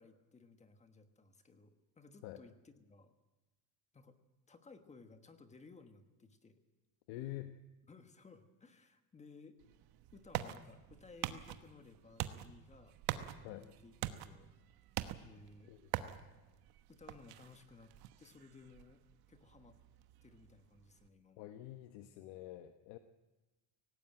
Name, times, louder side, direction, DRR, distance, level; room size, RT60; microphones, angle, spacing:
voice 1, 0.0-3.1 3.9-4.2 4.5-6.6 7.9-9.6 10.1-13.9 14.2-14.5 15.2-15.7 16.9-19.0 19.3-19.8 20.2-21.5, left 4 dB, 15° left, 8 dB, 1.3 m, -59 dB
voice 2, 7.1-7.6 13.4-13.7 15.7-15.8 21.4-23.0, left 14 dB, 70° left, 8 dB, 1.2 m, -47 dB
sound 1, 9.6-21.1, right 13 dB, 50° right, 1.2 m, -45 dB
18.0 x 17.0 x 8.9 m, 1.1 s
cardioid pair, 160°, 46 cm